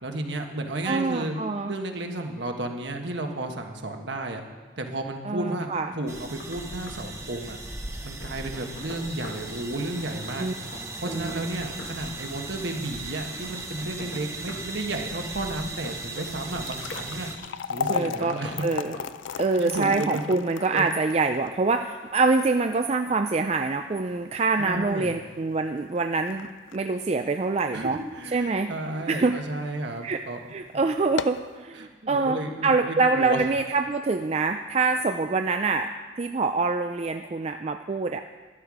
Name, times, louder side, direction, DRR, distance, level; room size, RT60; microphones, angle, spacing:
voice 1, 0.0-1.3 1.6-4.4 4.8-7.6 8.0-10.5 11.0-17.3 17.7-18.6 19.3-20.2 20.7-20.9 24.6-25.1 27.7-30.9 31.7-33.4, right 2 dB, 65° right, 4 dB, 1.3 m, -33 dB
voice 2, 0.8-1.7 5.3-5.9 10.4-10.5 11.1-11.4 17.9-18.4 18.6-18.9 19.4-28.0 28.3-28.7 29.1-29.4 30.0-30.2 30.5-32.4 32.6-35.9 36.2-38.2, right 3 dB, 30° right, 6 dB, 0.4 m, -25 dB
Knock, 5.8-6.6 6.9-7.0 8.2-9.4 10.7-12.0 13.4-14.7 15.9-17.1 17.9-18.7 18.9-19.1, left 1 dB, 60° left, 1.6 m, -42 dB
sound 1, 6.1-17.4, right 2 dB, 15° right, 0.9 m, -37 dB
sound 2, 16.5-28.7 29.1-29.2 29.9-30.1 30.4-30.5 31.0-31.5, left 6 dB, 80° left, 0.4 m, -36 dB
12.5 x 12.0 x 4.9 m, 1.4 s
head